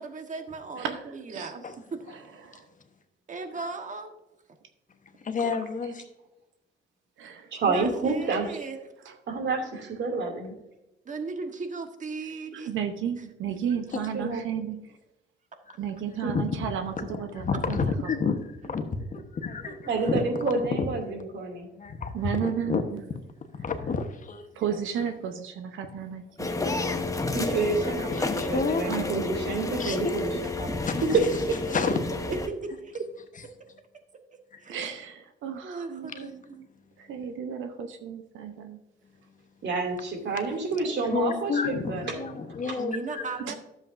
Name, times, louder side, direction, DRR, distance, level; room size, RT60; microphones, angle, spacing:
voice 1, 0.0-2.0 3.3-4.1 7.6-8.8 11.0-12.7 18.6-18.7 19.7-19.8 20.0-20.5 32.5-32.9 34.6-34.8 35.6-36.7 42.8-43.6, right 4 dB, 40° right, 6 dB, 1.3 m, -37 dB
voice 2, 0.8-1.5 2.1-2.7 7.2-7.5 8.2-8.4 9.0-9.2 9.8-9.9 12.5-15.0 15.8-17.8 19.9-20.1 22.1-23.0 24.5-26.5 28.8-29.3 34.7-36.3 37.0-38.8 43.4-43.5, right 8 dB, 80° right, 7 dB, 0.8 m, -33 dB
voice 3, 5.2-6.0 13.9-14.1 16.2-16.7 17.0-18.4 18.6-18.8 19.1-19.8 20.7-20.8 21.7-22.1 22.4-22.8 23.5-24.5 26.9-27.1 28.1-28.9 29.8-30.0 30.8-31.2 31.7-32.0 34.5-34.6 36.1-36.3 41.1-43.5, left 5 dB, 40° left, 7 dB, 1.1 m, -30 dB
voice 4, 7.5-8.6 9.3-10.5 14.1-14.4 16.2-16.3 19.9-21.7 27.3-30.3 30.6-30.7 31.1-31.2 39.6-42.2 42.6-42.8, right 4 dB, 65° right, 2 dB, 2.6 m, -28 dB
sound 1, 26.4-32.5, left 2 dB, 15° left, 0.9 m, -30 dB
11.5 x 7.5 x 2.6 m, 0.95 s
cardioid pair, 90°, 20 cm